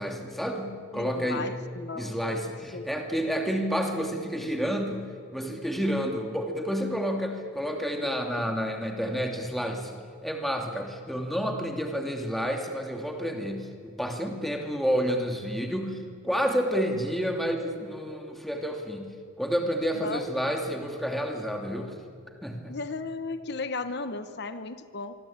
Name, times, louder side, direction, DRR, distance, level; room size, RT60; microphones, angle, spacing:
voice 1, 0.0-1.5 1.9-19.1 19.4-21.9 22.4-22.8, equal, ahead, 2 dB, 2.7 m, -30 dB
voice 2, 0.9-2.2 2.7-2.9 8.0-8.5 19.9-20.4 22.7-25.2, left 3 dB, 55° left, 10 dB, 1.0 m, -36 dB
25.5 x 24.5 x 8.8 m, 2.2 s
head